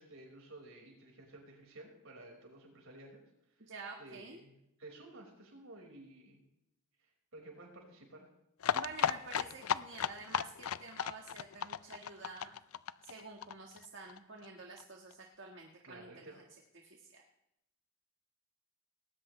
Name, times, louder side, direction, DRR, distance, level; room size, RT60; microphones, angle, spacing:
voice 1, 0.0-3.2 3.6-3.7 4.0-6.4 7.0-8.3 15.8-16.4, right 2 dB, 70° right, 0 dB, 5.2 m, -53 dB
voice 2, 3.7-4.4 8.7-12.6 13.0-16.1 16.8-17.2, right 4 dB, 55° right, 0 dB, 1.6 m, -49 dB
sound 1, 8.6-14.2 14.4-14.5 14.8-14.9 15.1-15.2, left 8 dB, 80° left, 0.5 m, -35 dB
19.0 x 18.5 x 3.3 m, 0.83 s
head